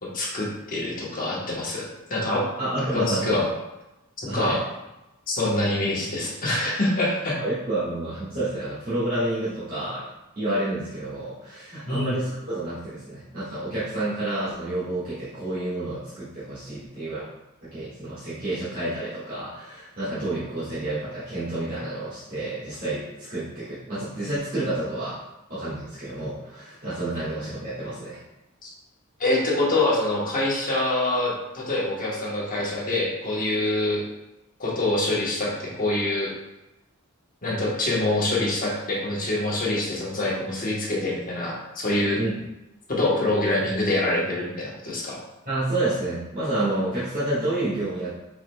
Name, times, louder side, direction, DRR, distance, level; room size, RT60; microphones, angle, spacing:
voice 1, 0.0-2.5 2.9-3.5 4.2-4.6 5.3-7.4 11.9-12.1 28.6-28.7 29.2-34.0 34.6-36.3 37.4-42.2 42.9-45.2, left 2 dB, 40° left, -4 dB, 1.1 m, -25 dB
voice 2, 2.6-3.4 4.2-4.6 7.4-10.0 10.3-17.2 17.6-25.2 25.5-28.2 42.2-42.3 45.4-48.1, right 1 dB, 40° right, -13 dB, 1.5 m, -29 dB
4.8 x 4.3 x 2.2 m, 0.96 s
head